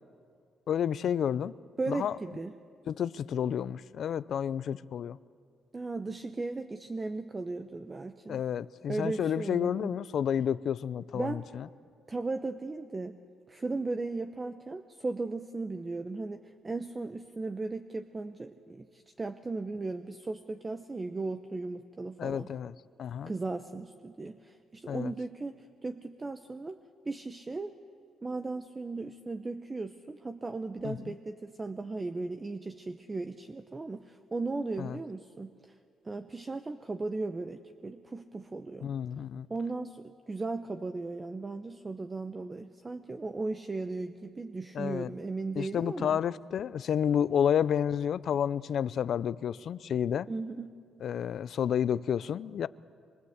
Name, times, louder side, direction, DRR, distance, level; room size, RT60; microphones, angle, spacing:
voice 1, 0.7-1.5 1.9-2.2 2.9-5.2 8.3-11.7 22.2-22.7 23.0-23.3 24.9-25.1 30.8-31.1 34.8-35.0 38.8-39.5 44.7-45.1 45.6-50.3 51.0-52.7, left 8 dB, 65° left, 0.5 m, -30 dB
voice 2, 1.8-2.5 5.7-8.4 8.9-9.9 11.1-11.4 12.1-13.2 13.5-22.5 23.2-26.8 27.0-27.8 28.2-35.7 36.0-39.0 39.5-46.2 50.3-50.8, right 3 dB, 25° right, 0.8 m, -36 dB
24.5 x 23.0 x 8.1 m
cardioid pair, 90°, 0 cm